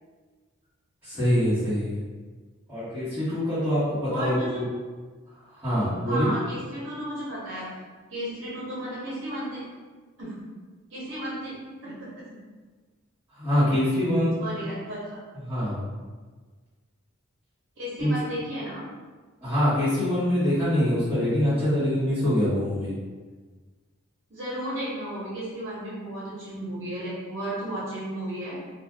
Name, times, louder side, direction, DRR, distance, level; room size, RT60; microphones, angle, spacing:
voice 1, 1.0-2.0 2.7-4.6 5.5-6.3 13.3-14.6 15.4-15.8 18.0-18.1 19.4-22.9, equal, 10° right, -19 dB, 1.2 m, -24 dB
voice 2, 4.1-4.6 6.1-7.7 8.1-9.6 10.2-10.3 10.9-11.6 11.8-12.1 14.4-15.2 17.8-18.9 24.3-28.6, right 1 dB, 60° right, -8 dB, 0.9 m, -34 dB
2.5 x 2.3 x 3.2 m, 1.4 s
head